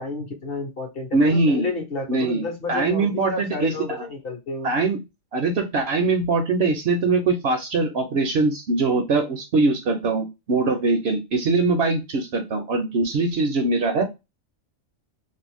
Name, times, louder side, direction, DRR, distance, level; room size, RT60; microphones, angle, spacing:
voice 1, 0.0-4.7, left 3 dB, 50° left, 3 dB, 0.9 m, -31 dB
voice 2, 1.1-1.7 2.1-3.7 4.6-5.0 5.3-14.0, right 3 dB, 60° right, 6 dB, 0.7 m, -22 dB
2.8 x 2.5 x 3.3 m, 0.24 s
omnidirectional pair, 1.4 m